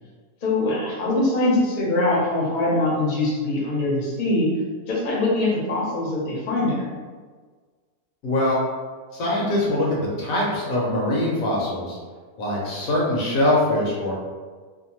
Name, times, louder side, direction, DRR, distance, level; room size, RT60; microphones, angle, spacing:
voice 1, 0.4-4.5 4.9-6.8, left 2 dB, 45° left, -5 dB, 0.7 m, -22 dB
voice 2, 8.2-8.6 9.1-12.0 12.4-14.1, left 1 dB, 70° left, -4 dB, 1.1 m, -23 dB
2.7 x 2.2 x 2.9 m, 1.5 s
omnidirectional pair, 1.6 m